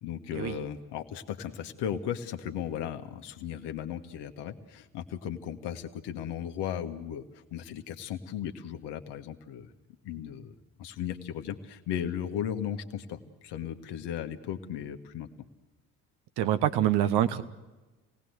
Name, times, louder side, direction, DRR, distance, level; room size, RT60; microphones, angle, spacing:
voice 1, 0.0-9.7 10.0-10.5 10.8-15.3, left 9 dB, 60° left, 7 dB, 1.8 m, -36 dB
voice 2, 16.4-17.4, right 11 dB, 60° right, 11 dB, 1.4 m, -25 dB
27.5 x 18.5 x 8.1 m, 1.1 s
figure-of-eight pair, 50°, 46 cm